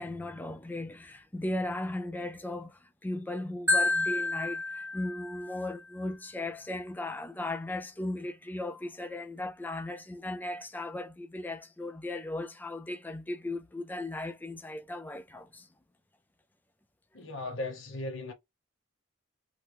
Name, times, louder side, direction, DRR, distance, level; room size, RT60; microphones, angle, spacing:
voice 1, 0.0-15.7, left 2 dB, 10° left, 0.3 m, -37 dB
Marimba xylophone, 3.7-5.7, left 2 dB, 10° right, 0.8 m, -29 dB
voice 2, 17.1-18.3, left 2 dB, 65° left, 0.8 m, -37 dB
2.9 x 2.1 x 3.2 m
head